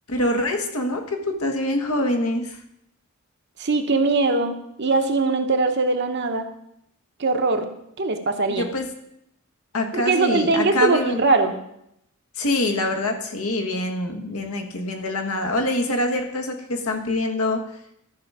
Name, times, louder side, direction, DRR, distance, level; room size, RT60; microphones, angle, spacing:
voice 1, 0.1-2.6 8.6-8.9 9.7-11.2 12.4-17.6, left 1 dB, 80° left, 4 dB, 1.4 m, -25 dB
voice 2, 3.6-6.5 7.2-7.7 8.0-8.7 9.9-11.5, right 3 dB, 50° right, 6 dB, 0.9 m, -21 dB
13.5 x 5.6 x 4.9 m, 0.77 s
head